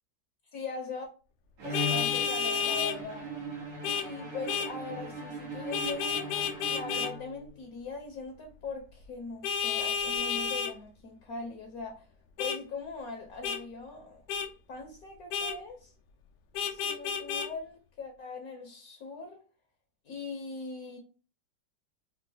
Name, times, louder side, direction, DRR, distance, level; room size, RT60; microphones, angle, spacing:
voice 1, 0.5-1.1 1.6-3.3 3.8-6.3 6.7-12.1 12.4-14.2 14.7-15.9 16.6-19.4 20.0-21.0, left 4 dB, 65° left, 1.1 m, -41 dB
Bowed string instrument, 1.6-7.6, equal, 70° right, 1.6 m, -39 dB
Vehicle horn car horn honking, 1.7-3.0 3.8-4.1 4.5-4.7 5.7-7.1 9.4-10.7 12.4-12.6 13.4-13.6 14.3-14.5 15.3-15.6 16.5-17.5, left 6 dB, 90° left, 1.3 m, -31 dB
4.6 x 2.4 x 2.7 m
omnidirectional pair, 1.9 m